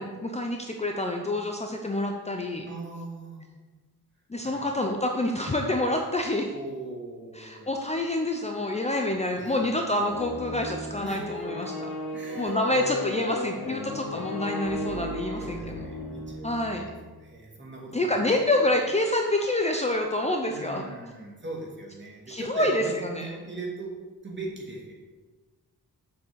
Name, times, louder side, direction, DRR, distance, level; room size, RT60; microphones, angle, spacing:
voice 1, 0.0-2.7 4.3-6.5 7.4-11.9 12.4-15.6 16.4-16.8 17.9-20.8 22.3-23.3, left 1 dB, 20° left, 2 dB, 0.7 m, -27 dB
voice 2, 2.7-3.4 4.4-4.7 6.5-7.8 9.3-9.9 11.0-11.5 12.1-14.7 15.4-16.9 17.2-18.4 20.5-23.9 24.2-24.9, right 2 dB, 30° right, -2 dB, 2.4 m, -40 dB
sound 1, 10.1-17.0, left 2 dB, 75° left, 1.7 m, -35 dB
7.2 x 6.5 x 6.9 m, 1.3 s
wide cardioid pair, 140°, 36 cm